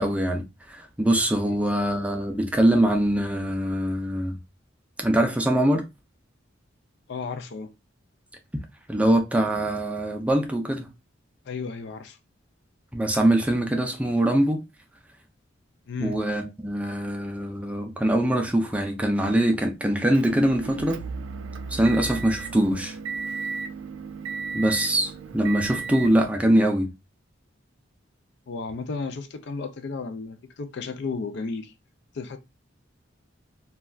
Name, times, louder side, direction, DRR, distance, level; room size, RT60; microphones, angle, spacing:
voice 1, 0.0-4.3 5.0-5.8 8.9-10.9 12.9-14.6 16.0-21.0 21.7-23.0 24.5-26.9, right 1 dB, 5° right, 0.4 m, -23 dB
voice 2, 7.1-7.7 11.5-12.2 15.9-16.2 28.5-31.7 32.1-32.4, left 4 dB, 65° left, 0.4 m, -33 dB
Motor vehicle (road) / Engine, 20.1-26.3, right 5 dB, 85° right, 0.3 m, -35 dB
3.2 x 2.3 x 2.2 m
head